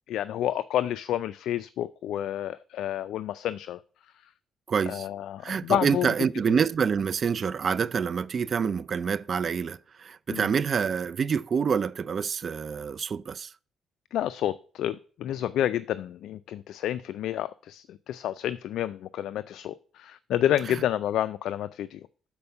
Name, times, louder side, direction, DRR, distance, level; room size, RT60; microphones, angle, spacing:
voice 1, 0.1-3.8 4.9-6.1 6.5-6.6 10.3-10.5 14.1-22.1, left 11 dB, 80° left, 0.3 m, -29 dB
voice 2, 4.7-5.1 5.4-13.5, right 6 dB, 45° right, 0.3 m, -27 dB
6.9 x 4.3 x 5.6 m
cardioid pair, 90°, 0 cm